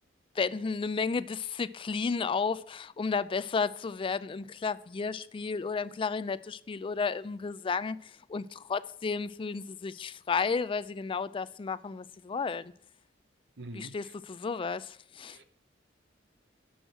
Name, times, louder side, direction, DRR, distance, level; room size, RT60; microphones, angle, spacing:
voice 1, 0.4-12.7 13.7-15.4, left 5 dB, 25° left, 0.3 m, -32 dB
voice 2, 13.6-13.9 15.3-15.4, right 1 dB, 65° right, 0.9 m, -43 dB
6.3 x 6.2 x 6.5 m
head